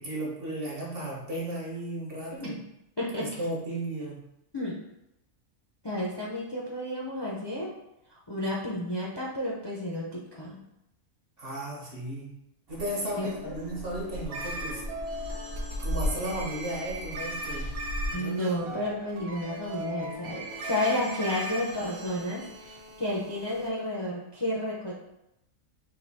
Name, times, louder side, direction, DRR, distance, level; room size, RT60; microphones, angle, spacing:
voice 1, 0.0-2.6 3.2-4.2 11.4-12.3 12.7-14.8 15.8-17.8 18.1-18.8, right 1 dB, 45° right, -3 dB, 1.1 m, -35 dB
voice 2, 3.0-3.3 4.5-4.8 5.8-7.7 8.1-10.6 13.2-13.6 18.1-25.0, left 1 dB, 30° left, -5 dB, 0.5 m, -32 dB
sound 1, 12.7-18.1, left 1 dB, 25° right, 0.5 m, -36 dB
sound 2, 14.3-23.7, right 1 dB, 80° right, 1.3 m, -39 dB
3.9 x 2.7 x 4.0 m, 0.84 s
omnidirectional pair, 1.5 m